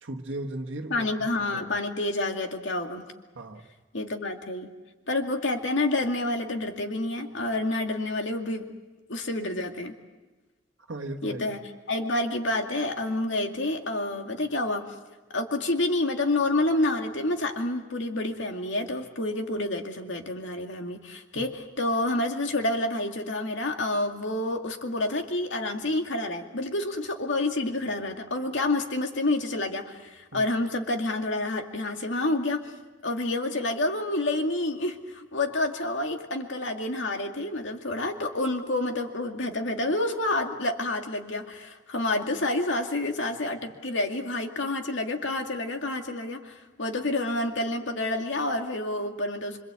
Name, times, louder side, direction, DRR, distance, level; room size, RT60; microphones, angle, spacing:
voice 1, 0.0-1.1 1.5-1.7 3.3-3.6 10.9-11.5 21.3-21.5 30.3-30.4, right 1 dB, 80° right, 1 dB, 1.5 m, -36 dB
voice 2, 0.9-3.1 3.9-4.7 5.1-8.7 9.1-9.9 11.2-11.6 11.9-14.9 15.3-32.7 33.0-49.6, left 2 dB, 70° left, 4 dB, 2.3 m, -28 dB
26.5 x 25.0 x 8.4 m, 1.2 s
head